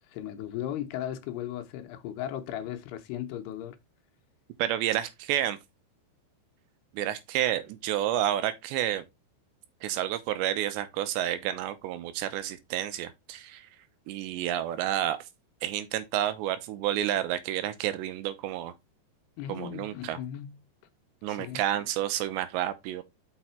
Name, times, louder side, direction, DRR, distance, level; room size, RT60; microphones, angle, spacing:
voice 1, 0.1-3.8 19.4-20.6 21.3-21.6, left 11 dB, 75° left, 2.7 m, -36 dB
voice 2, 4.6-5.6 6.9-9.0 9.8-13.7 14.1-15.2 15.6-18.7 19.5-20.2 21.2-23.0, right 12 dB, 90° right, 3.2 m, -30 dB
6.4 x 5.8 x 4.4 m
omnidirectional pair, 4.9 m